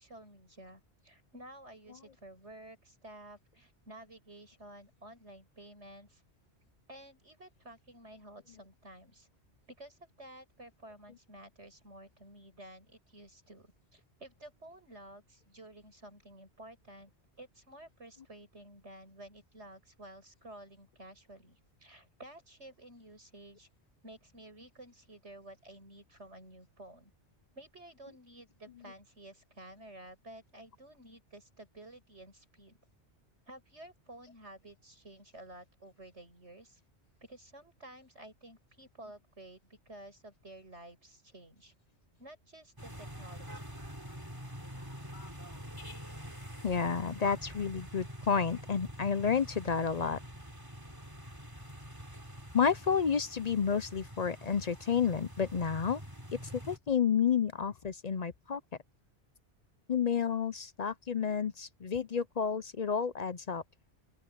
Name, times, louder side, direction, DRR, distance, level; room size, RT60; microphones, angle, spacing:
voice 1, 0.0-6.2 6.9-9.3 9.7-17.1 17.4-23.7 24.0-27.1 27.5-32.8 33.5-36.8 37.2-41.7 42.2-43.7, right 1 dB, 80° right, 7.8 m, -52 dB
sound 1, 42.8-56.8, equal, 20° right, 3.4 m, -46 dB
voice 2, 46.6-50.2 52.5-56.0 56.4-58.6 59.9-63.6, left 6 dB, 45° left, 0.6 m, -30 dB
open air
omnidirectional pair, 1.2 m